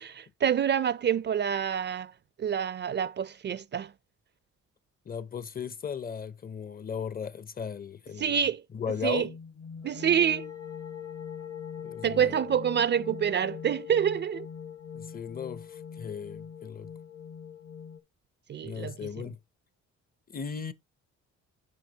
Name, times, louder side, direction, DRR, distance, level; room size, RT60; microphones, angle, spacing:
voice 1, 0.0-2.1 2.4-3.9 8.2-8.6 9.0-9.3 9.8-10.5 12.0-14.5 18.5-18.9, right 8 dB, 35° right, 0.4 m, -27 dB
voice 2, 5.1-8.4 8.7-9.3 11.8-12.4 14.9-16.9 18.6-19.4 20.3-20.7, left 6 dB, 30° left, 0.5 m, -36 dB
sound 1, 9.1-18.0, left 7 dB, 50° left, 1.1 m, -42 dB
9.2 x 4.8 x 2.8 m
cardioid pair, 90°, 30 cm